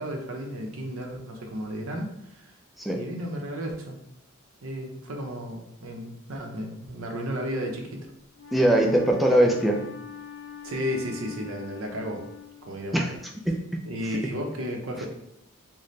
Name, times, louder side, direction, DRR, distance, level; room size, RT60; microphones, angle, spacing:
voice 1, 0.0-2.5 2.9-4.0 4.6-8.1 10.6-12.2 12.7-13.1 13.8-15.1, equal, 70° right, 2 dB, 0.6 m, -33 dB
Wind instrument woodwind instrument, 8.3-13.1, left 8 dB, 70° left, 0.6 m, -43 dB
voice 2, 8.5-9.8 12.9-13.1 13.5-13.6 15.0-15.1, right 1 dB, ahead, 0 dB, 0.3 m, -21 dB
4.0 x 2.1 x 3.1 m, 0.78 s
head